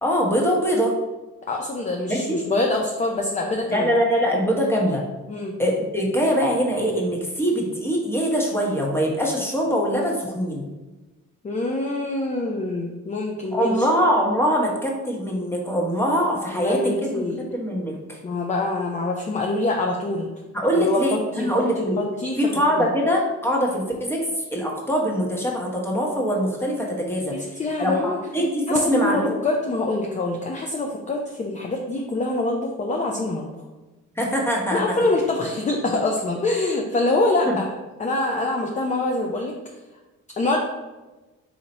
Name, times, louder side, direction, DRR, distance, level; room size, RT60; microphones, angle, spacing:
voice 1, 0.0-0.9 2.1-2.4 3.7-5.0 5.6-10.7 13.5-17.1 17.4-18.2 20.5-22.0 22.4-29.4 34.2-35.0 37.4-37.5, equal, 10° left, -1 dB, 1.1 m, -23 dB
voice 2, 1.5-3.9 5.3-5.6 11.4-13.9 16.5-17.4 18.2-20.3 20.8-21.5 21.8-22.4 22.7-22.9 27.3-28.2 28.7-33.4 34.7-37.7 38.0-39.6 40.4-40.6, left 2 dB, 25° left, 1 dB, 0.5 m, -25 dB
4.0 x 2.8 x 4.1 m, 1.1 s
cardioid pair, 90°, 30 cm